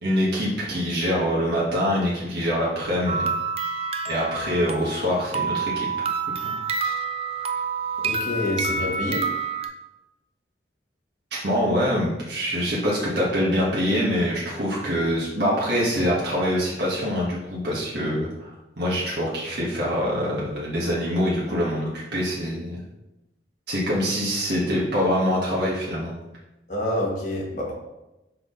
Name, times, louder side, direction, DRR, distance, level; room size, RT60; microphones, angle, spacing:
voice 1, 0.0-3.3 4.1-5.9 6.4-6.5 11.3-22.8 23.7-26.1, equal, 60° right, -6 dB, 1.5 m, -24 dB
sound 1, 3.1-9.7, right 4 dB, 30° right, 0.4 m, -28 dB
voice 2, 8.0-9.2 26.7-27.7, left 1 dB, 40° left, -3 dB, 1.7 m, -27 dB
6.1 x 4.7 x 3.9 m, 0.95 s
head